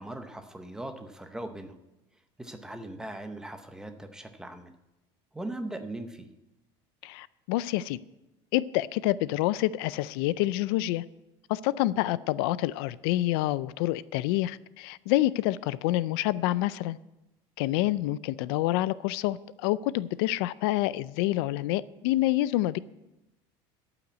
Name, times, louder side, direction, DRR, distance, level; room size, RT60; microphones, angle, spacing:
voice 1, 0.0-1.7 2.4-4.7 5.3-6.3 17.8-17.9, right 1 dB, 5° right, 0.7 m, -39 dB
voice 2, 7.0-8.0 8.5-11.0 11.5-17.0 17.6-22.8, left 16 dB, 85° left, 0.4 m, -27 dB
13.0 x 5.9 x 8.1 m
cardioid pair, 165°, 12 cm